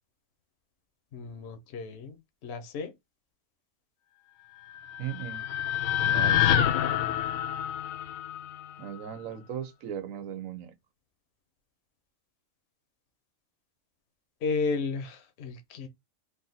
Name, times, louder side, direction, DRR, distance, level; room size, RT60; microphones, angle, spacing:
voice 1, 1.1-2.9 14.4-15.9, left 4 dB, 60° left, 1.0 m, -33 dB
sound 1, 4.7-9.0, left 10 dB, 80° left, 1.0 m, -27 dB
voice 2, 5.0-5.5 6.0-6.7 8.8-10.7, right 9 dB, 80° right, 1.1 m, -38 dB
3.4 x 2.7 x 3.9 m
omnidirectional pair, 1.4 m